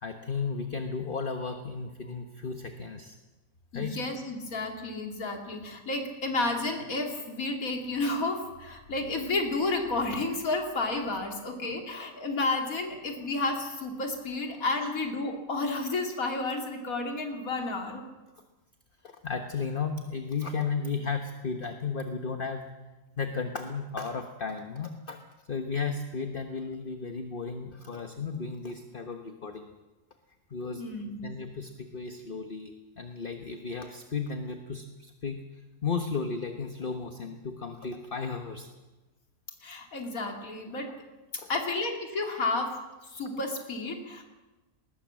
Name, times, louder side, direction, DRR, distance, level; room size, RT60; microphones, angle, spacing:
voice 1, 0.0-3.2 3.7-3.9 19.0-22.7 23.2-25.2 25.5-29.7 30.5-30.8 31.2-35.4 35.8-38.7 41.4-41.5, left 5 dB, 40° left, 6 dB, 1.4 m, -34 dB
voice 2, 3.7-18.0 30.8-31.3 39.6-40.9 41.5-42.7 43.1-44.2, left 2 dB, 75° left, 2 dB, 3.2 m, -31 dB
20.0 x 19.5 x 7.6 m, 1.1 s
omnidirectional pair, 1.5 m